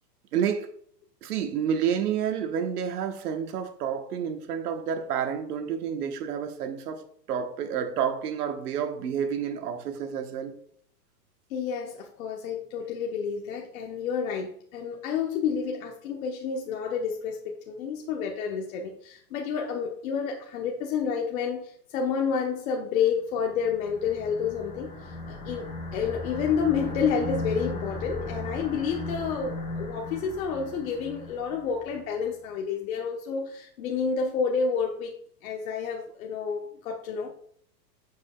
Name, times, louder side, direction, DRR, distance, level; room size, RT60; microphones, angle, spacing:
voice 1, 0.3-0.7 1.2-10.5 28.7-28.9, right 8 dB, 65° right, 1.3 m, -29 dB
voice 2, 11.5-35.1 35.4-37.3, left 6 dB, 55° left, 1.1 m, -29 dB
sound 1, 23.4-32.0, left 2 dB, 15° left, 1.4 m, -37 dB
7.9 x 7.2 x 2.3 m
hypercardioid pair, 145°, 50 cm